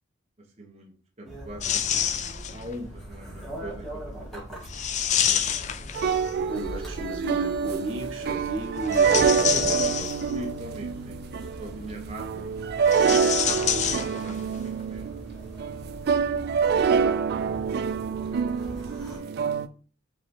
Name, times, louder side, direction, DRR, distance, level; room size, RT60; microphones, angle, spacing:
voice 1, 0.6-1.8 2.5-4.6 5.2-5.4 9.2-9.9 10.2-11.2 11.6-12.3 14.0-15.1 16.7-17.6 18.3-19.6, equal, 35° right, -1 dB, 0.9 m, -41 dB
sound 1, 1.2-19.2, equal, ahead, 1.5 m, -42 dB
sound 2, 1.6-2.7 4.7-6.5 8.8-10.5 12.8-14.6 14.8-14.9 15.9-16.0, left 8 dB, 35° left, 0.4 m, -28 dB
sound 3, 5.9-19.7, right 6 dB, 55° right, 0.3 m, -26 dB
voice 2, 6.3-10.1 12.3-12.4, right 1 dB, 90° right, 2 dB, 1.5 m, -34 dB
5.5 x 3.2 x 2.8 m, 0.40 s
head